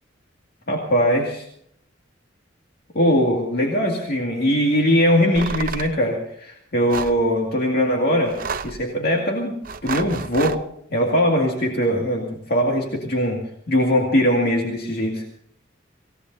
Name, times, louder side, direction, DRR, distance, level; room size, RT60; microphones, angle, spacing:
voice 1, 0.7-1.5 2.9-8.4 8.6-10.6 10.9-13.4 13.7-15.2, equal, 50° left, -1 dB, 2.2 m, -21 dB
sound 1, 5.3-5.9 6.9-7.2 8.3-8.8 9.6-10.6, right 5 dB, 45° right, 0.6 m, -30 dB
26.5 x 17.0 x 2.7 m, 0.70 s
head